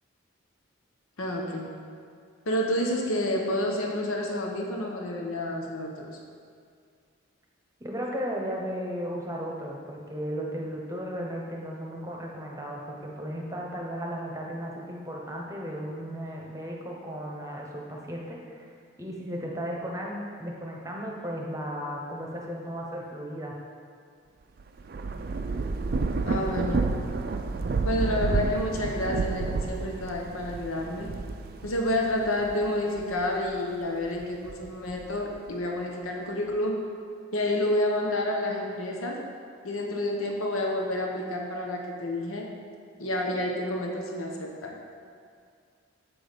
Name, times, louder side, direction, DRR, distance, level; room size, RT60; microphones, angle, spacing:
voice 1, 1.2-1.8 2.5-6.2 26.3-26.9 27.8-31.2 31.6-36.9 37.3-39.2 39.6-42.5 43.0-44.8, left 1 dB, 90° left, 1 dB, 1.0 m, -29 dB
voice 2, 7.8-18.7 19.0-23.6, equal, 15° right, -1 dB, 0.9 m, -35 dB
Thunder / Rain, 24.6-33.5 34.0-35.4, right 3 dB, 45° right, 0.4 m, -30 dB
7.7 x 6.2 x 5.1 m, 2.2 s
head